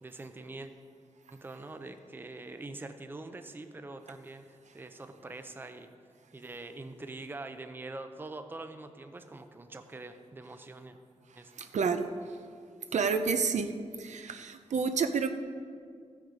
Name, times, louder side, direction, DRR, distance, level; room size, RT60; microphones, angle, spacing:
voice 1, 0.0-0.7 1.3-5.9 6.3-11.0 11.4-11.7, right 2 dB, 15° right, 8 dB, 0.5 m, -44 dB
voice 2, 11.6-12.1 12.9-13.7 14.0-15.3, right 5 dB, 85° right, 8 dB, 0.6 m, -29 dB
14.5 x 6.5 x 5.0 m, 2.1 s
wide cardioid pair, 165°, 12 cm